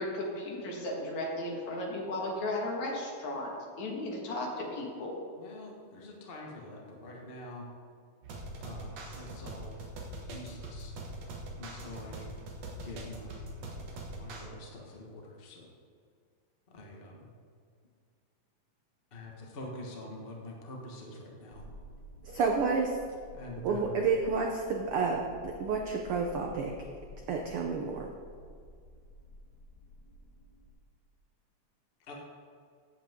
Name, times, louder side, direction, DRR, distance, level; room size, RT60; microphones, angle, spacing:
voice 1, 0.0-3.5 3.8-5.1, left 1 dB, 65° left, -1 dB, 3.0 m, -35 dB
voice 2, 5.3-7.7 8.6-9.8 10.2-10.9 11.6-12.3 12.8-13.6 14.1-15.7 16.7-17.3 19.1-21.7 23.3-24.0 32.0-32.1, left 1 dB, 45° left, -1 dB, 0.7 m, -45 dB
sound 1, 8.2-14.4, right 1 dB, 60° right, 2.4 m, -43 dB
sound 2, 21.5-30.7, left 1 dB, 15° left, 2.8 m, -52 dB
voice 3, 22.2-23.0 23.6-26.7 27.3-28.1, right 4 dB, 75° right, 1 dB, 1.3 m, -30 dB
15.5 x 8.1 x 3.7 m, 2.1 s
omnidirectional pair, 3.5 m